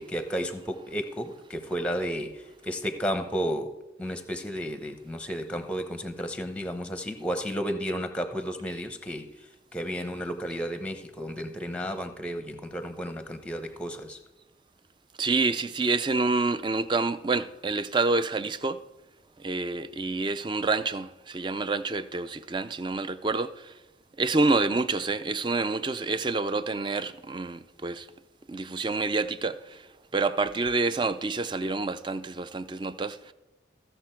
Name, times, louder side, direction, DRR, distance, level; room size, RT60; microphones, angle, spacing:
voice 1, 0.0-3.7 4.0-9.3 9.7-14.2, equal, 5° left, 0.8 m, -32 dB
voice 2, 15.2-18.8 19.4-23.8 24.2-28.1 28.5-29.9 30.1-33.3, right 3 dB, 25° right, 0.4 m, -28 dB
15.5 x 6.8 x 4.4 m
head